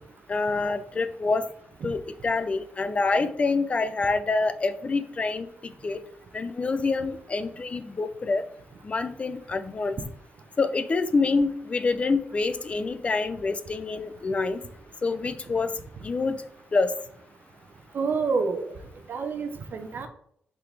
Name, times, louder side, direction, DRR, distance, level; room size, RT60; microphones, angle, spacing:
voice 1, 0.3-1.4 1.8-5.5 5.8-6.0 6.3-8.4 8.8-10.0 10.6-14.7 15.0-15.7 16.0-16.4 16.7-16.9, left 3 dB, 30° left, 11 dB, 0.5 m, -26 dB
voice 2, 17.9-18.7 19.1-20.1, right 4 dB, 55° right, 6 dB, 0.9 m, -28 dB
7.7 x 4.1 x 3.5 m, 0.66 s
wide cardioid pair, 145°, 4 cm